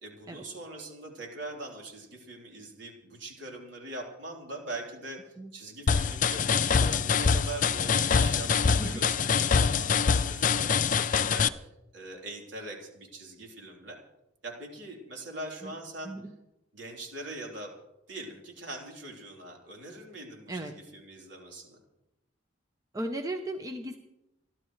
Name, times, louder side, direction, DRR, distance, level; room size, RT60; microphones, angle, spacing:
voice 1, 0.0-5.2 5.5-14.0 14.4-16.2 16.7-17.7 18.1-21.8, right 2 dB, 65° right, 0 dB, 3.8 m, -42 dB
sound 1, 5.9-11.5, left 6 dB, 40° left, 0.5 m, -25 dB
voice 2, 8.7-9.1 15.6-15.7 16.0-16.3 20.5-20.7 22.9-24.0, right 1 dB, 15° right, 5 dB, 0.8 m, -36 dB
29.5 x 12.0 x 3.2 m, 0.91 s
head